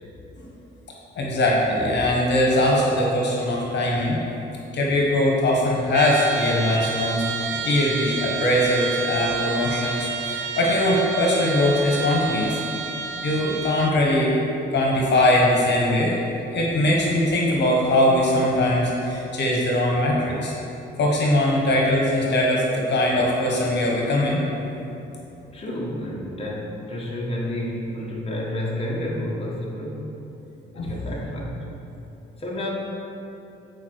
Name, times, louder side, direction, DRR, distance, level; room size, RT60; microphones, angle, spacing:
voice 1, 1.2-4.2 4.7-12.6 13.2-14.3 14.7-16.2 16.5-20.5 21.0-24.4 30.8-30.9, left 1 dB, 60° left, -2 dB, 1.4 m, -21 dB
Trumpet, 5.9-14.0, right 5 dB, 75° right, 0.5 m, -30 dB
voice 2, 25.5-30.1 30.7-31.7 32.4-32.7, left 1 dB, 30° left, -4 dB, 1.5 m, -30 dB
8.4 x 4.8 x 4.8 m, 2.9 s
cardioid pair, 90°, 20 cm